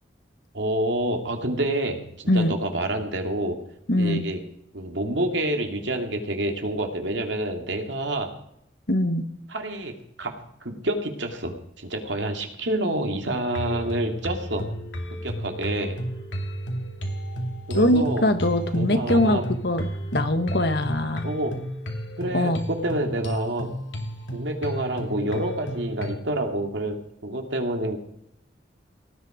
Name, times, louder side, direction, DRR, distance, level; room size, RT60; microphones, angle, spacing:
voice 1, 0.5-2.0 2.3-3.6 4.0-4.4 4.7-8.3 9.5-10.3 10.6-14.7 15.2-16.0 17.7-18.3 18.7-19.4 21.2-21.6 22.2-23.7 24.3-28.0, right 1 dB, 75° right, 4 dB, 2.5 m, -28 dB
voice 2, 3.9-4.2 8.9-9.2 17.7-21.3 22.3-22.6, left 1 dB, 60° left, 8 dB, 1.5 m, -22 dB
sound 1, 13.5-26.2, right 1 dB, 85° left, 2.6 m, -32 dB
18.0 x 11.0 x 5.1 m, 0.74 s
head